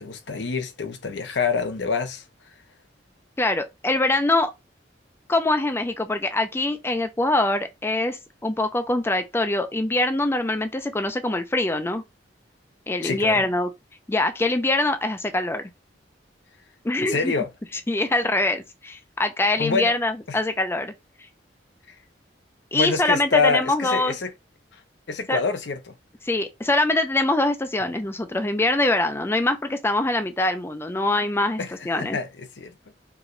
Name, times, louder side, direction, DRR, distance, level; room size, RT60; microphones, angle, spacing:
voice 1, 0.0-2.2 13.0-13.4 17.0-17.5 19.6-19.9 20.3-20.4 22.7-24.3 25.1-25.9 31.6-32.7, left 5 dB, 75° left, 0.7 m, -26 dB
voice 2, 3.4-4.5 5.3-12.0 12.9-13.7 14.1-15.7 16.8-17.3 17.9-20.9 22.7-24.2 25.3-25.4 26.2-31.6 31.9-32.2, left 2 dB, 15° left, 0.4 m, -23 dB
4.7 x 3.0 x 2.6 m
head